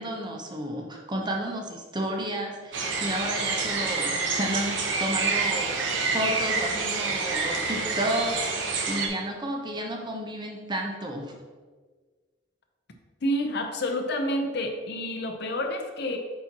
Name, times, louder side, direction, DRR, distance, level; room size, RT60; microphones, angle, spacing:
voice 1, 0.0-11.4, equal, 25° right, 1 dB, 0.8 m, -32 dB
sound 1, 2.7-9.1, right 4 dB, 75° right, 0.9 m, -27 dB
voice 2, 13.2-16.2, left 1 dB, 60° left, 4 dB, 0.7 m, -29 dB
8.6 x 4.4 x 2.9 m, 1.4 s
head